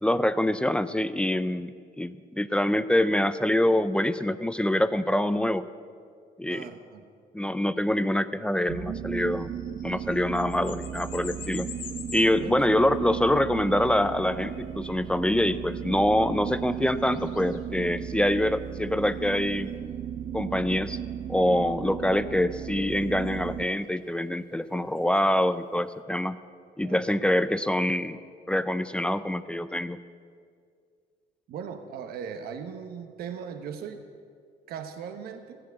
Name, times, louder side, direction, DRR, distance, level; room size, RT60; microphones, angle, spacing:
voice 1, 0.0-1.7 2.0-5.7 6.4-6.7 7.3-9.5 9.8-11.7 12.1-19.7 20.3-21.0 21.3-26.4 26.8-28.2 28.5-30.0, left 1 dB, 5° left, 13 dB, 0.4 m, -25 dB
voice 2, 6.5-7.0 12.4-12.8 26.8-27.3 31.5-34.0 34.7-35.6, right 7 dB, 65° right, 7 dB, 1.0 m, -39 dB
sound 1, 8.7-23.7, right 9 dB, 45° right, 0.5 m, -35 dB
sound 2, 9.2-19.8 21.5-21.6 22.8-25.7, left 7 dB, 55° left, 1.5 m, -49 dB
15.5 x 7.7 x 8.1 m, 2.2 s
cardioid pair, 110°, 17 cm